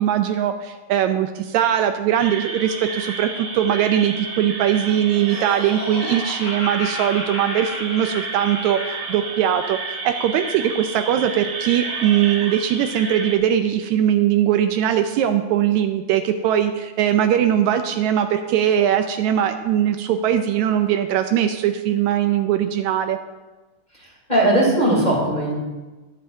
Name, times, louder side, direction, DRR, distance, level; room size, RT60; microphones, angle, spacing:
voice 1, 0.0-23.2, right 10 dB, 80° right, 7 dB, 1.9 m, -20 dB
sound 1, 2.2-13.4, right 4 dB, 60° right, 2.2 m, -31 dB
Laughter, 4.7-9.1, left 2 dB, 80° left, 4.2 m, -34 dB
voice 2, 23.9-25.5, right 1 dB, 15° left, -6 dB, 3.1 m, -19 dB
20.5 x 7.9 x 2.7 m, 1.2 s
omnidirectional pair, 3.3 m